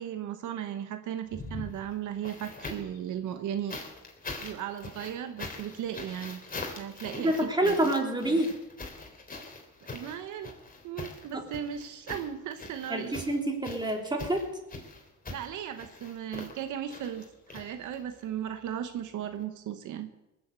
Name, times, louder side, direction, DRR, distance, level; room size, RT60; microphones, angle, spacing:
voice 1, 0.0-3.8 4.4-6.4 6.8-7.9 8.3-8.4 9.9-10.5 10.8-13.2 15.3-20.1, right 10 dB, 80° right, 8 dB, 1.1 m, -36 dB
sound 1, 1.2-3.0 3.7-18.2 19.3-19.4, left 3 dB, 30° left, 3.5 m, -42 dB
voice 2, 7.2-8.5 11.3-11.4 12.9-14.4, right 1 dB, 15° right, 2 dB, 3.4 m, -27 dB
19.5 x 7.8 x 8.1 m, 0.97 s
cardioid pair, 90°, 30 cm